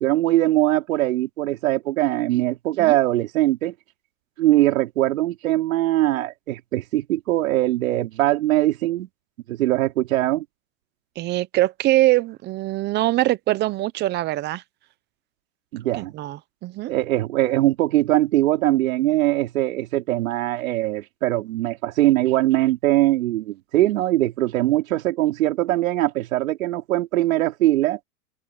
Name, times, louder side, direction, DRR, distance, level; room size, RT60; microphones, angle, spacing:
voice 1, 0.0-3.7 4.4-9.1 9.5-10.4 15.7-16.1 16.9-28.0, right 15 dB, 65° right, 4.2 m, -21 dB
voice 2, 11.2-14.6 16.0-16.9, right 16 dB, 25° right, 0.8 m, -23 dB
open air
hypercardioid pair, 140°, 43 cm